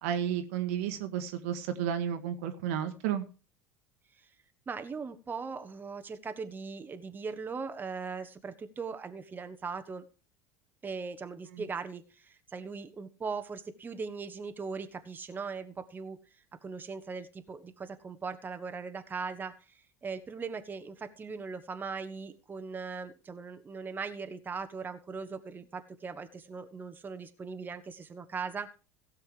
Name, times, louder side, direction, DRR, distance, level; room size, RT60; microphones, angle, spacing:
voice 1, 0.0-3.2 11.5-11.6, right 9 dB, 70° right, 8 dB, 1.5 m, -32 dB
voice 2, 4.7-10.1 10.8-16.2 16.6-28.8, right 5 dB, 25° right, 8 dB, 1.2 m, -39 dB
16.5 x 6.5 x 4.9 m, 0.34 s
hypercardioid pair, 70°, 8 cm